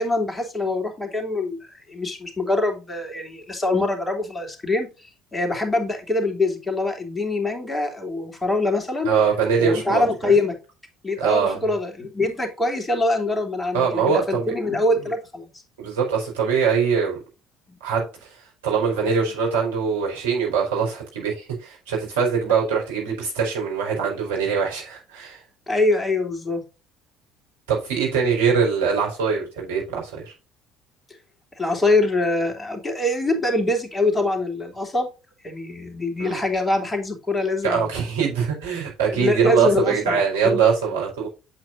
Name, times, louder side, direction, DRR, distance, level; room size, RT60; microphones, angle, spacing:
voice 1, 0.0-9.1 9.6-10.5 11.0-15.5 17.7-17.8 25.7-26.6 31.6-35.1 35.4-37.9 39.1-40.6, left 2 dB, 15° left, 3 dB, 3.3 m, -24 dB
voice 2, 9.0-10.3 11.2-11.6 13.7-14.5 15.8-17.2 17.8-18.1 18.6-25.4 27.7-30.3 36.2-36.4 37.6-41.3, right 6 dB, 70° right, -1 dB, 4.5 m, -22 dB
8.8 x 7.8 x 2.6 m, 0.30 s
figure-of-eight pair, 55°, 0 cm